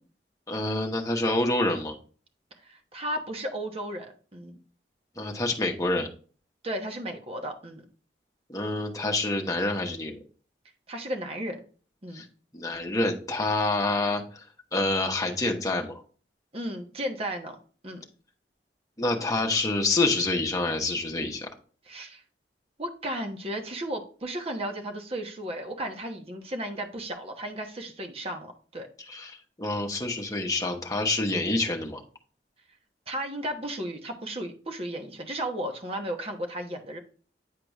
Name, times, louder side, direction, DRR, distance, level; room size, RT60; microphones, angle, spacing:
voice 1, 0.5-2.0 5.2-6.1 8.5-10.2 12.1-12.2 12.5-14.5 14.7-16.0 19.0-21.5 29.1-32.0, left 2 dB, 20° left, 1 dB, 1.1 m, -27 dB
voice 2, 2.6-4.6 6.6-7.8 10.9-11.6 12.0-12.2 16.5-17.6 17.8-18.0 21.9-22.2 22.8-28.9 33.1-37.0, right 1 dB, 35° right, 4 dB, 1.1 m, -34 dB
9.6 x 4.8 x 2.4 m, 0.39 s
head